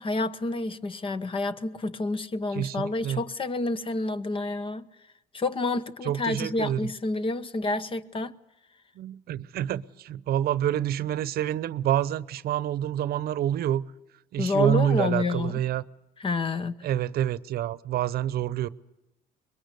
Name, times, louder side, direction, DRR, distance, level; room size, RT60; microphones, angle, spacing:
voice 1, 0.0-4.9 5.3-8.4 14.4-15.5 16.2-16.8, left 3 dB, 30° left, 1.1 m, -29 dB
voice 2, 2.5-3.2 6.0-6.8 9.0-13.8 14.3-15.8 16.8-18.7, right 11 dB, 65° right, 0.8 m, -27 dB
25.0 x 22.0 x 8.3 m
cardioid pair, 110°, 17 cm